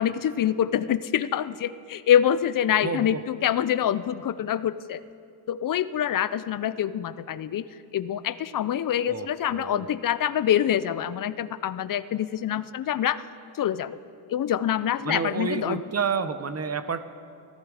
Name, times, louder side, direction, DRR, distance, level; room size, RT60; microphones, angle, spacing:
voice 1, 0.0-5.0 5.5-7.7 7.9-13.2 13.5-14.0 14.3-15.8, left 10 dB, 45° left, 15 dB, 0.5 m, -25 dB
voice 2, 2.8-3.2 9.1-9.9 15.0-17.0, right 6 dB, 30° right, 12 dB, 0.7 m, -30 dB
16.5 x 14.5 x 4.8 m, 2.5 s
cardioid pair, 100°, 49 cm